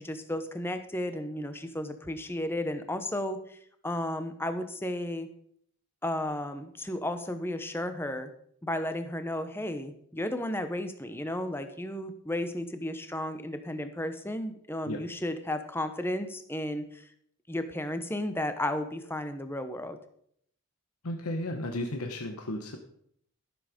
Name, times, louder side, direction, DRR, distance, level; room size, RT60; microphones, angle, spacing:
voice 1, 0.0-3.6 3.8-5.3 6.0-8.3 8.6-17.1 17.5-20.0, left 1 dB, 10° left, 9 dB, 0.8 m, -33 dB
voice 2, 21.0-22.8, left 1 dB, 85° left, 5 dB, 1.1 m, -34 dB
14.0 x 7.4 x 5.1 m, 0.69 s
head